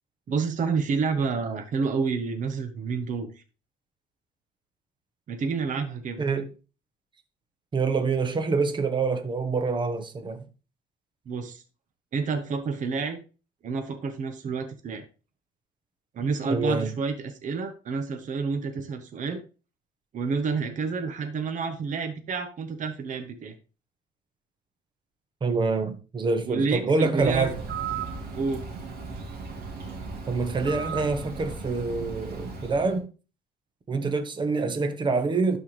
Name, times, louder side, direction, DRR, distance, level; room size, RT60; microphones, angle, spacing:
voice 1, 0.3-3.4 5.3-6.2 11.3-11.6 12.1-13.2 13.6-15.1 16.1-19.4 20.1-23.5 26.4-27.5 28.4-28.6, right 5 dB, 50° right, 1.2 m, -29 dB
voice 2, 6.2-6.5 7.7-10.4 16.4-16.9 25.4-27.5 30.3-33.1 33.9-35.6, right 4 dB, 30° right, 1.2 m, -26 dB
Bird, 27.2-33.0, right 5 dB, 70° right, 2.6 m, -36 dB
12.0 x 4.7 x 3.3 m
cardioid pair, 110°, 17 cm